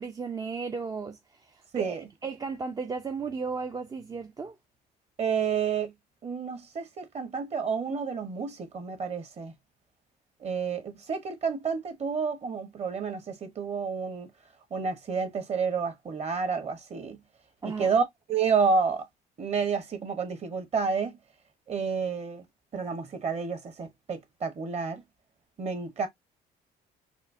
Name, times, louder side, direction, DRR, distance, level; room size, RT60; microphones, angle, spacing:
voice 1, 0.0-2.0 2.2-4.5 17.6-17.9, right 5 dB, 20° right, 0.4 m, -35 dB
voice 2, 5.2-5.9 6.2-9.5 10.4-14.3 14.7-17.2 17.6-19.0 19.4-21.2 21.7-22.4 22.7-25.0 25.6-26.1, right 5 dB, 40° right, 1.3 m, -30 dB
4.2 x 2.8 x 2.6 m
cardioid pair, 110°, 17 cm